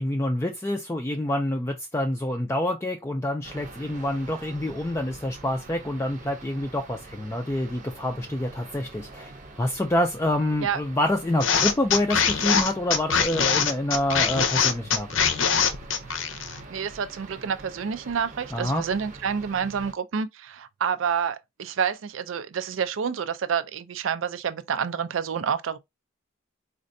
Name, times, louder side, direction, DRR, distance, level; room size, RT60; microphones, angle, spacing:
voice 1, 0.0-9.3 9.6-15.2 18.5-18.9, left 1 dB, 15° left, 0.3 m, -27 dB
sound 1, 3.4-19.9, right 3 dB, 40° right, 0.7 m, -45 dB
sound 2, 11.4-16.6, left 6 dB, 75° left, 0.6 m, -23 dB
voice 2, 16.7-25.8, right 7 dB, 80° right, 0.4 m, -28 dB
4.2 x 2.5 x 2.6 m
head